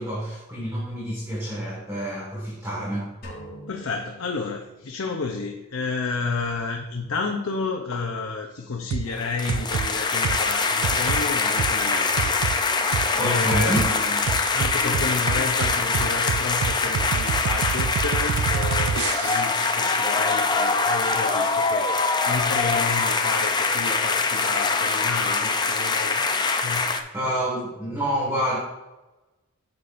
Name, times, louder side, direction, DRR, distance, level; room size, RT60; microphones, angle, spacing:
voice 1, 0.0-3.1 13.2-13.9 27.1-28.6, equal, 15° right, -6 dB, 1.8 m, -28 dB
sound 1, 3.2-5.3, equal, 45° left, 2.7 m, -44 dB
voice 2, 3.7-14.2 14.5-26.2 26.6-26.9 27.2-27.4, left 4 dB, 75° left, 2 dB, 0.7 m, -31 dB
sound 2, 8.9-9.1 9.5-9.9 10.2-10.4 10.8-11.2 11.6-11.7 12.2-12.6 12.9-13.1 13.5-13.9 14.3-19.6, right 7 dB, 85° right, 0.3 m, -27 dB
sound 3, 9.1-27.0, left 4 dB, 20° left, 0.5 m, -24 dB
9.7 x 6.7 x 2.6 m, 1.0 s
head